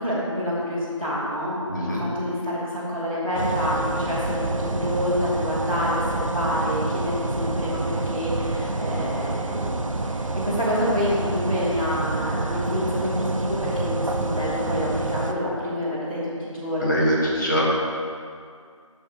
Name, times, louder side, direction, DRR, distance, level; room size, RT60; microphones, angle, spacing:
voice 1, 0.0-17.1, equal, 15° right, -15 dB, 0.9 m, -27 dB
voice 2, 1.7-2.0 16.8-17.6, equal, 35° left, -6 dB, 1.4 m, -23 dB
sound 1, 3.3-15.3, right 2 dB, 75° right, 0.5 m, -28 dB
7.9 x 6.3 x 2.9 m, 2.2 s
figure-of-eight pair, 170°, 17 cm